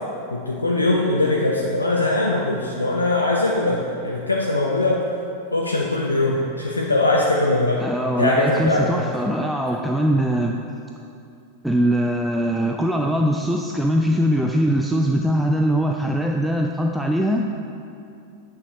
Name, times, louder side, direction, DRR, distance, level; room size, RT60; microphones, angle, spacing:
voice 1, 0.3-5.1 5.5-7.8 8.2-9.0, left 2 dB, 80° left, -2 dB, 0.5 m, -21 dB
voice 2, 7.8-10.6 11.6-17.5, equal, 5° right, 1 dB, 0.3 m, -21 dB
8.8 x 4.9 x 3.8 m, 2.6 s
figure-of-eight pair, 90°, 0 cm